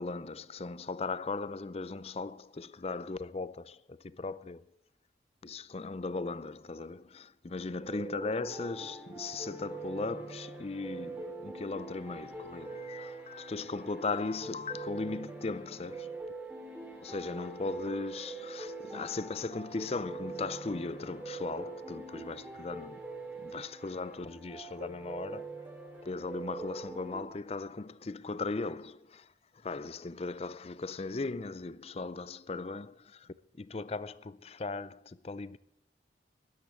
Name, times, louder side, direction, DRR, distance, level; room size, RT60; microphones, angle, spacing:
voice 1, 0.0-4.6 5.4-16.2 17.0-23.0 23.4-25.5 26.0-35.6, left 3 dB, 35° left, 0.5 m, -38 dB
sound 1, 7.8-27.2, right 3 dB, 10° right, 2.5 m, -43 dB
12.5 x 11.5 x 7.0 m
head